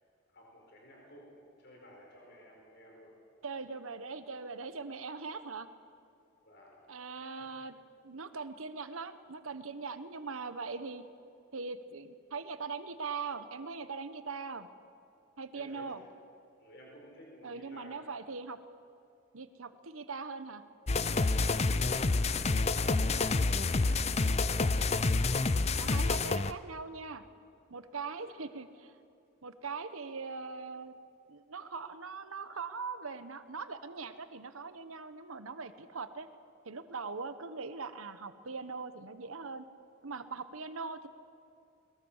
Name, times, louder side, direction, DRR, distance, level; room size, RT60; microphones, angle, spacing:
voice 1, 0.3-3.1 6.4-6.8 7.2-7.5 15.5-16.0 16.6-18.1 21.4-24.4 28.0-28.3, equal, 50° left, -1 dB, 4.4 m, -54 dB
voice 2, 3.4-5.7 6.9-7.7 8.0-11.0 11.5-14.7 15.4-16.0 17.4-18.6 19.3-20.6 25.8-27.2 27.7-28.9 29.4-30.9 31.3-36.3 36.6-39.7 40.0-41.1, right 4 dB, 85° right, 11 dB, 1.2 m, -41 dB
sound 1, 20.9-26.5, left 3 dB, 30° left, 0.5 m, -28 dB
22.0 x 21.0 x 7.3 m, 2.4 s
head